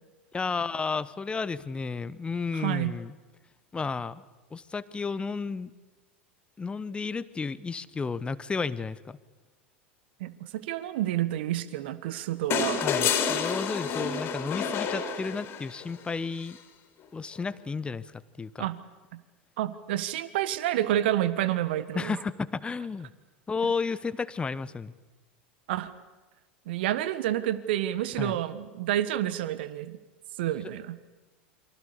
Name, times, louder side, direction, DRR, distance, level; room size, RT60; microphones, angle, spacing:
voice 1, 0.3-3.1 3.7-4.2 4.5-5.7 6.6-9.2 12.5-16.6 17.1-18.7 21.9-23.1 23.5-24.9 28.2-28.4, left 4 dB, 15° left, 17 dB, 1.1 m, -32 dB
voice 2, 2.5-3.0 10.2-12.8 18.6-18.8 19.1-19.2 19.6-22.2 25.7-25.9 26.7-30.0 30.4-31.0, right 13 dB, 60° right, 14 dB, 1.4 m, -29 dB
sound 1, 12.5-15.8 17.4-17.5, left 7 dB, 40° left, 4.0 m, -29 dB
28.5 x 24.5 x 6.9 m, 1.2 s
figure-of-eight pair, 85°, 6 cm